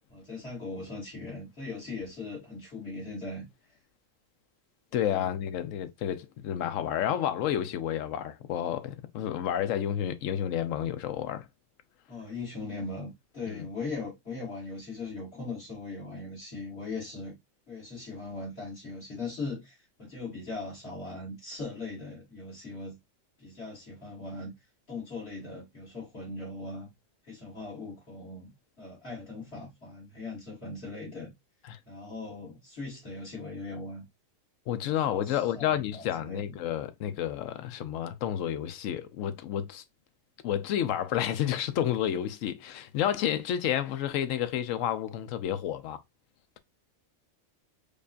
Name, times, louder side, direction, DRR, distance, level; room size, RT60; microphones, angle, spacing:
voice 1, 0.1-3.5 4.9-5.3 12.1-17.4 17.7-23.0 23.4-24.5 24.9-26.9 27.3-31.3 31.8-34.0 34.8-36.6, left 3 dB, 50° left, 2.3 m, -39 dB
voice 2, 4.9-11.5 13.5-13.7 31.7-31.8 34.7-39.8 40.4-46.0, left 10 dB, 80° left, 0.9 m, -30 dB
5.1 x 2.3 x 2.4 m
omnidirectional pair, 1.3 m